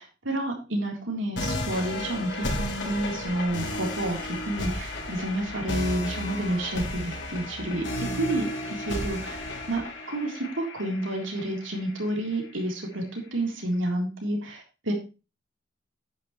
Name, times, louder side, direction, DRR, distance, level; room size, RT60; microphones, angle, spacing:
voice 1, 0.0-9.8 10.1-14.9, right 1 dB, 85° right, 1 dB, 3.8 m, -30 dB
sound 1, 1.4-12.3, left 1 dB, 65° left, 4.1 m, -33 dB
10.5 x 9.6 x 3.2 m, 0.30 s
head